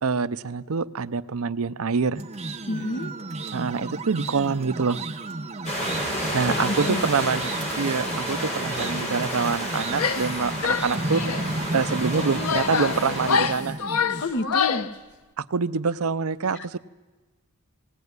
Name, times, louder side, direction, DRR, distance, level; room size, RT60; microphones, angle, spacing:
voice 1, 0.0-2.2 3.5-5.0 6.3-7.5 7.8-11.2 11.7-13.8 15.4-16.8, right 5 dB, 70° right, 13 dB, 0.6 m, -26 dB
sound 1, 2.1-14.2, right 2 dB, 30° right, 0.8 m, -33 dB
voice 2, 2.7-3.1 6.5-7.0 14.2-14.9 16.5-16.8, left 2 dB, 55° left, 8 dB, 1.2 m, -29 dB
sound 2, 5.6-13.4, equal, 30° left, 7.9 m, -31 dB
Female speech woman speaking / Yell, 9.9-10.3 10.6-11.5 12.1-14.9, left 6 dB, 90° left, 0.8 m, -26 dB
18.5 x 18.0 x 9.6 m, 1.2 s
head